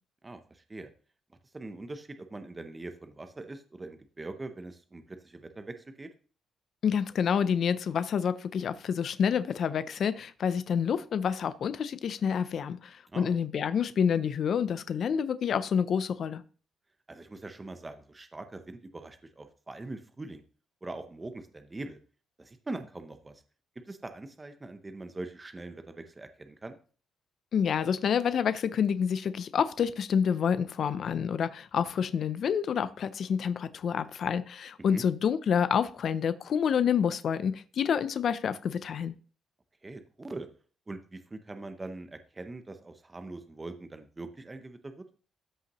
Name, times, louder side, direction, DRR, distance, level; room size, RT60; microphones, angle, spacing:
voice 1, 0.2-0.9 1.5-6.1 13.1-13.4 17.1-20.4 20.8-22.0 22.4-23.4 23.9-26.8 34.9-35.0 39.8-40.5 40.9-45.0, right 2 dB, 15° right, 8 dB, 0.6 m, -42 dB
voice 2, 6.8-16.4 27.5-39.1, left 7 dB, 45° left, 14 dB, 0.4 m, -28 dB
13.0 x 5.5 x 3.0 m, 0.40 s
cardioid pair, 170°, 0 cm